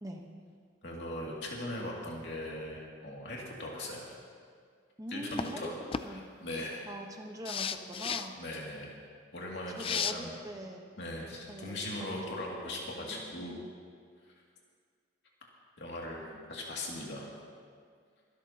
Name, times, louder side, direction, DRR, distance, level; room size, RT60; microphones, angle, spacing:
voice 1, 0.8-4.1 5.1-5.7 6.0-6.8 8.3-9.0 9.3-10.3 11.0-13.6 15.8-16.2 16.5-17.3, left 1 dB, 60° left, -3 dB, 2.5 m, -39 dB
voice 2, 5.0-5.7 6.0-6.2 6.9-8.3 9.7-10.9 11.5-12.2 13.0-13.7 16.2-16.5, right 1 dB, 20° right, 2 dB, 1.1 m, -43 dB
sound 1, 5.3-5.5 5.9-6.1 7.5-8.3 9.8-10.1, left 7 dB, 30° left, 0.3 m, -33 dB
24.0 x 12.5 x 2.9 m, 2.1 s
head